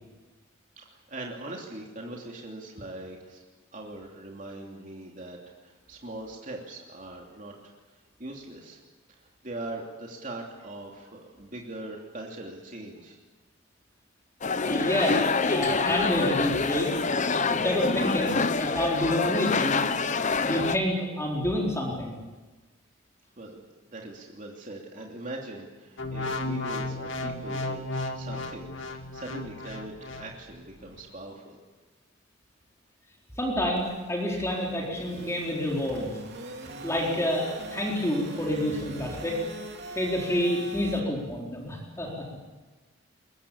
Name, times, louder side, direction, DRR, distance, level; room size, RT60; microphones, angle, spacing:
voice 1, 0.8-3.4 3.7-5.4 5.6-7.7 8.2-8.8 9.2-13.2 23.4-31.6, right 2 dB, 40° right, -1 dB, 3.0 m, -41 dB
sound 1, 14.4-20.8, left 4 dB, 35° left, 0.8 m, -26 dB
voice 2, 14.6-16.9 17.5-19.8 20.4-22.2 33.4-36.1 36.8-39.4 39.9-42.2, left 1 dB, 15° left, -2 dB, 4.2 m, -28 dB
sound 2, 26.0-30.3 30.9-31.1, left 2 dB, 65° left, 2.2 m, -34 dB
sound 3, 33.8-41.0, right 2 dB, 55° right, 3.3 m, -42 dB
22.0 x 22.0 x 8.7 m, 1.2 s
head